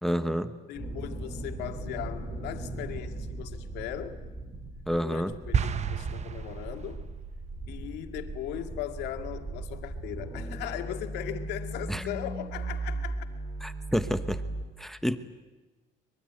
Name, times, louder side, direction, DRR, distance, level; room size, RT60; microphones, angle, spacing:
voice 1, 0.0-0.5 4.9-5.3 11.9-12.0 13.6-14.4 14.8-15.2, equal, ahead, 10 dB, 1.1 m, -29 dB
voice 2, 0.7-4.2 5.0-7.1 7.7-13.3, left 12 dB, 85° left, 6 dB, 2.1 m, -38 dB
sound 1, 0.7-14.6, right 2 dB, 15° right, 4.9 m, -38 dB
sound 2, 5.5-7.2, right 7 dB, 40° right, 1.1 m, -30 dB
24.0 x 22.5 x 9.3 m, 1.2 s
cardioid pair, 110°, 17 cm